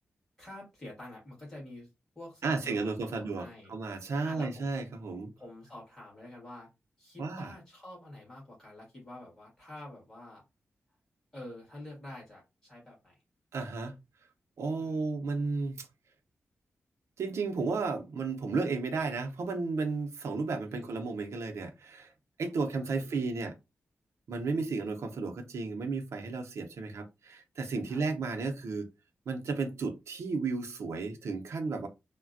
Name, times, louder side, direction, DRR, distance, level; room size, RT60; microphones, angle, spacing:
voice 1, 0.4-1.9 2.2-3.7 4.3-4.8 5.4-6.7 7.0-10.4 11.3-13.2 14.8-15.0 20.7-21.0 22.6-23.4 24.5-24.7 27.9-28.0, left 1 dB, 10° left, 1.8 m, -48 dB
voice 2, 2.4-5.3 7.2-7.5 13.5-14.0 14.6-15.9 17.2-22.1 22.4-23.6 24.3-28.9 29.3-31.9, right 4 dB, 80° right, 0.6 m, -33 dB
3.2 x 2.1 x 2.5 m
wide cardioid pair, 180°, 5 cm